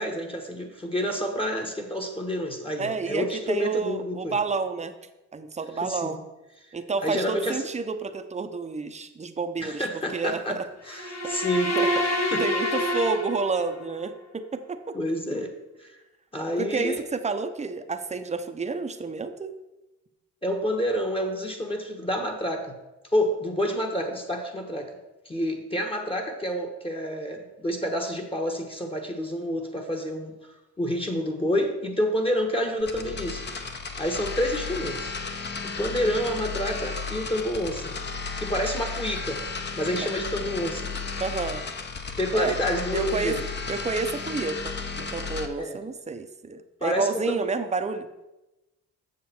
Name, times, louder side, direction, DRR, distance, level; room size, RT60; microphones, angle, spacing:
voice 1, 0.0-4.3 5.8-6.2 7.0-7.6 9.6-10.6 10.9-11.8 12.3-12.4 12.8-12.9 14.9-15.5 15.8-16.0 16.3-17.0 20.4-22.7 23.1-24.9 25.2-30.3 30.8-33.4 34.0-35.1 35.6-37.9 38.4-39.4 39.8-40.9 42.2-43.4 45.6-45.8 46.8-47.5, equal, 20° left, 2 dB, 1.2 m, -28 dB
voice 2, 2.8-4.9 5.3-6.2 6.7-9.9 10.1-10.7 11.8-11.9 12.4-15.0 16.6-19.5 41.2-41.6 42.3-42.5 42.9-43.4 43.7-48.1, right 4 dB, 20° right, 9 dB, 0.7 m, -30 dB
sound 1, 10.9-13.9, equal, 60° left, 2.2 m, -27 dB
sound 2, 32.8-45.5, left 4 dB, 35° left, 0.9 m, -34 dB
7.6 x 6.6 x 4.3 m, 1.0 s
cardioid pair, 90°, 30 cm